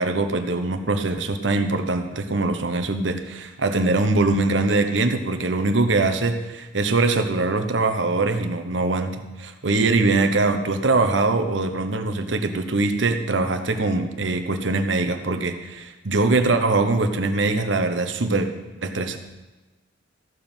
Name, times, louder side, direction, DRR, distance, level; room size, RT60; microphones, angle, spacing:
voice 1, 0.0-18.5 18.8-19.2, right 3 dB, 75° right, 7 dB, 1.0 m, -22 dB
14.0 x 7.0 x 5.6 m, 1.1 s
head